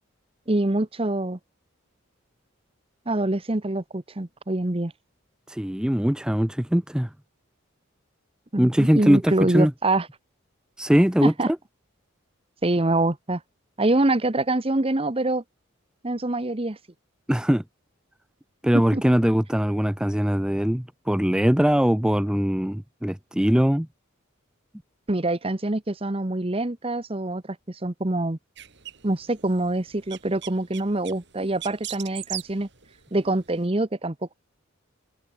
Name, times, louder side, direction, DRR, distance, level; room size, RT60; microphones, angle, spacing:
voice 1, 0.5-1.4 3.1-4.9 8.5-10.1 11.2-11.5 12.6-13.4 13.8-15.4 16.0-16.8 18.9-19.0 25.1-27.4 27.7-28.4 29.0-32.7 33.1-34.3, right 2 dB, 25° right, 1.0 m, -25 dB
voice 2, 5.5-7.1 8.6-9.7 10.8-11.6 17.3-17.6 18.6-23.9, equal, 5° right, 0.5 m, -21 dB
sound 1, 28.6-33.7, right 12 dB, 55° right, 3.4 m, -41 dB
head